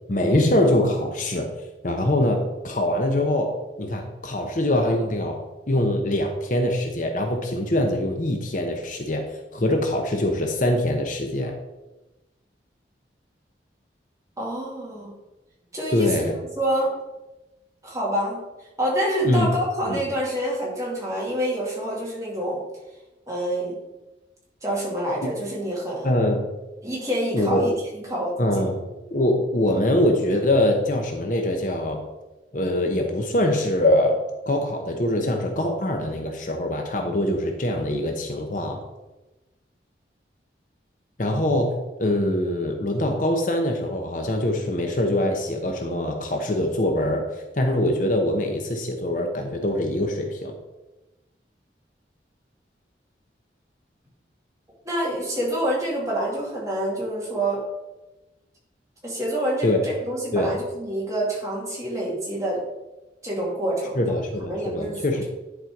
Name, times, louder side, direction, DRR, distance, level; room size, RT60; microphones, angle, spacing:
voice 1, 0.1-1.5 1.8-9.2 9.5-11.5 15.9-16.4 19.2-19.5 19.9-20.0 25.2-25.3 26.0-26.5 27.3-27.7 28.4-28.8 29.1-32.0 32.5-34.2 34.5-38.8 41.2-47.2 47.5-50.5 59.6-59.8 60.3-60.5 63.9-65.2, left 1 dB, 45° left, 3 dB, 0.9 m, -23 dB
voice 2, 14.4-15.1 15.7-16.1 16.6-16.9 17.8-18.4 18.8-22.6 23.3-23.8 24.6-26.1 26.8-28.6 54.8-57.6 59.0-62.6 63.2-64.2 64.5-65.0, right 1 dB, 15° right, -5 dB, 2.4 m, -27 dB
10.5 x 4.4 x 4.6 m, 1.0 s
head